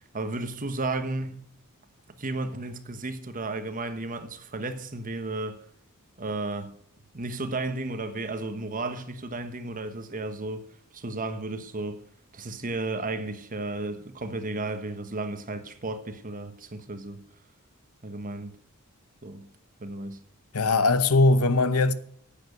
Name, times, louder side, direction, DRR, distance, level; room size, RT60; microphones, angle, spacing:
voice 1, 0.1-1.4 2.2-5.6 6.2-6.8 7.1-10.6 10.9-12.0 12.3-17.2 18.0-18.5 19.2-19.5 19.8-20.2, right 2 dB, 40° right, 1.2 m, -33 dB
voice 2, 20.5-21.9, left 2 dB, 85° left, 0.9 m, -20 dB
10.5 x 8.8 x 6.7 m
head